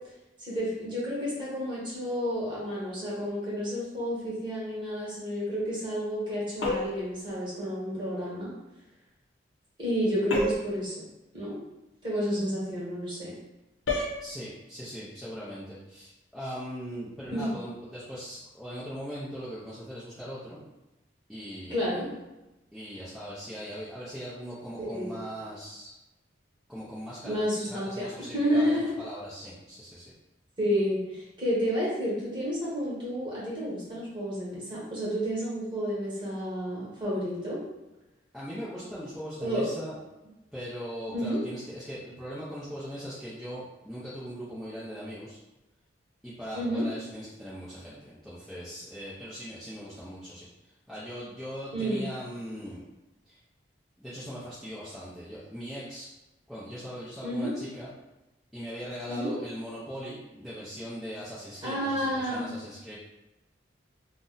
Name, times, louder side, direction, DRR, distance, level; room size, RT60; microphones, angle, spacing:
voice 1, 0.4-8.5 9.8-10.9 11.3-11.6 12.0-13.3 17.3-17.6 21.7-22.1 24.9-25.2 27.2-28.9 30.6-37.6 39.4-39.7 41.1-41.4 46.5-46.8 51.7-52.1 57.2-57.5 59.0-59.3 61.6-62.5, equal, 25° right, -7 dB, 1.1 m, -30 dB
sound 1, 6.6-7.1 10.3-10.8 13.9-14.2, left 2 dB, 90° left, 0.7 m, -29 dB
voice 2, 14.2-20.6 21.3-22.0 22.7-25.9 26.7-27.4 27.7-30.1 38.3-40.0 40.5-45.4 46.2-52.8 53.2-53.4 54.0-56.1 56.5-57.9 58.5-63.0, equal, ahead, -11 dB, 0.5 m, -40 dB
2.5 x 2.1 x 3.8 m, 0.99 s
head